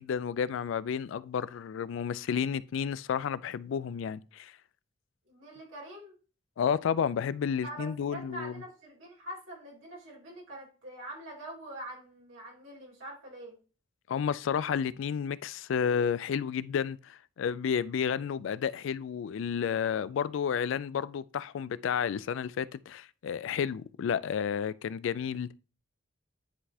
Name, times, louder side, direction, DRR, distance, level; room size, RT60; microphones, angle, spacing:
voice 1, 0.0-4.5 6.6-8.6 14.1-25.5, left 7 dB, 75° left, 0.3 m, -31 dB
voice 2, 5.3-6.1 7.6-13.5, right 1 dB, 85° right, 2.9 m, -44 dB
10.0 x 3.9 x 2.7 m
head